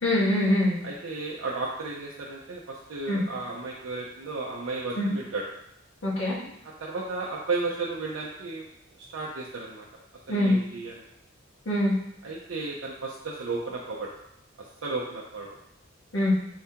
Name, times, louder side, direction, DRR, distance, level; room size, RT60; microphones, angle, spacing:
voice 1, 0.0-0.8 3.1-3.2 4.9-5.1 6.0-6.4 10.3-10.6 11.6-11.9 16.1-16.3, left 1 dB, 85° left, -6 dB, 1.5 m, -23 dB
voice 2, 0.8-5.4 6.6-8.6 9.0-9.8 10.3-11.0 12.2-14.1 14.6-15.5, right 3 dB, 85° right, -4 dB, 0.6 m, -34 dB
4.6 x 3.5 x 2.8 m, 0.79 s
head